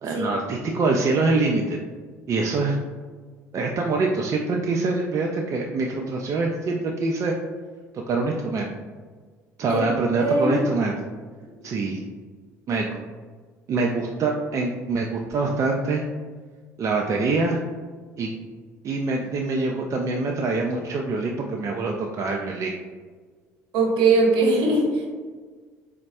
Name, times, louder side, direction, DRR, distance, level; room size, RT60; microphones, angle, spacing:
voice 1, 0.0-1.8 2.3-2.8 3.5-7.3 8.1-8.7 9.6-11.0 11.6-12.0 12.7-12.9 13.7-16.0 16.8-17.6 18.2-18.3 18.8-22.8, right 3 dB, 40° right, 0 dB, 0.4 m, -24 dB
voice 2, 10.1-10.6 12.7-12.8 23.7-25.1, right 3 dB, 65° right, -1 dB, 0.9 m, -20 dB
4.0 x 2.1 x 2.6 m, 1.5 s
figure-of-eight pair, 55°, 8 cm